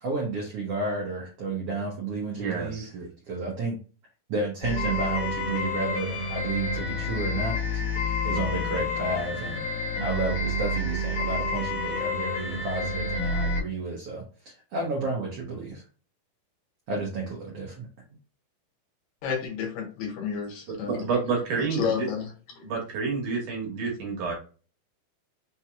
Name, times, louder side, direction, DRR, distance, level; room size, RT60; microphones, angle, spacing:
voice 1, 0.0-2.9 3.3-3.8 4.3-9.6 10.0-15.8 16.9-17.9, right 3 dB, 85° right, -2 dB, 1.3 m, -31 dB
voice 2, 2.4-3.1 20.8-22.1 22.6-24.3, right 5 dB, 65° right, -1 dB, 2.5 m, -29 dB
sound 1, 4.6-13.6, left 2 dB, 50° left, 2.4 m, -29 dB
voice 3, 19.2-21.0 21.8-22.2 22.6-22.7, left 7 dB, 75° left, 0 dB, 2.6 m, -30 dB
5.8 x 2.9 x 2.3 m, 0.36 s
omnidirectional pair, 4.2 m